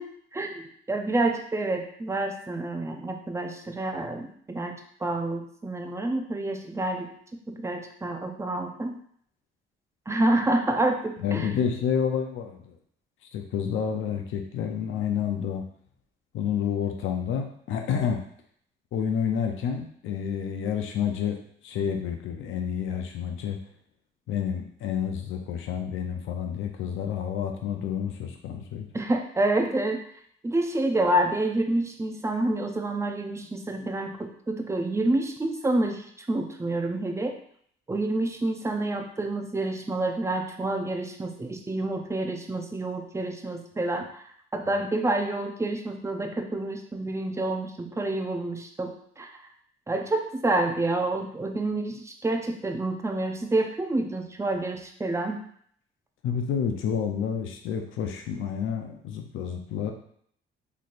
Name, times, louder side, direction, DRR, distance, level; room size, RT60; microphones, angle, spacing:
voice 1, 0.0-7.1 7.5-9.0 10.1-11.5 28.9-30.0 30.4-37.4 37.9-44.2 44.5-49.3 49.9-55.4, right 2 dB, 15° right, 4 dB, 0.5 m, -28 dB
voice 2, 11.2-12.7 13.3-15.6 16.3-18.2 18.9-21.4 21.6-23.6 24.3-28.9 56.2-59.9, left 7 dB, 85° left, 4 dB, 0.6 m, -29 dB
4.1 x 3.2 x 2.5 m, 0.64 s
cardioid pair, 90°, 20 cm